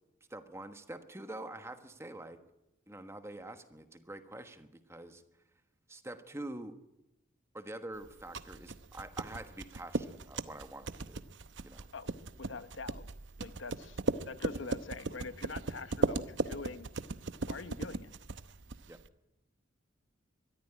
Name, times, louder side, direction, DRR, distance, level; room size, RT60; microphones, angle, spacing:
voice 1, 0.3-2.4 2.9-5.2 5.9-6.7 7.5-11.2 11.6-11.9 18.9-19.0, right 1 dB, 15° right, 8 dB, 1.3 m, -46 dB
sound 1, 8.0-19.1, right 3 dB, 65° right, 0.8 m, -37 dB
voice 2, 12.4-13.1 13.4-14.0 14.3-16.9 17.5-18.1, left 4 dB, 75° left, 12 dB, 1.0 m, -44 dB
21.5 x 13.5 x 10.0 m, 0.93 s
head